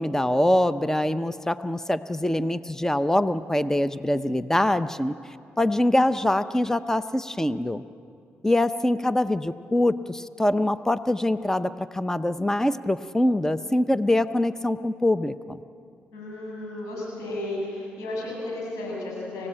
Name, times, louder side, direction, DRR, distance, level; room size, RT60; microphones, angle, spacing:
voice 1, 0.0-5.1 5.6-7.8 8.4-15.6, left 1 dB, 10° left, 12 dB, 0.7 m, -24 dB
voice 2, 16.1-19.5, left 1 dB, 90° left, -2 dB, 7.4 m, -33 dB
29.0 x 16.5 x 8.8 m, 2.5 s
supercardioid pair, 60°, 5 cm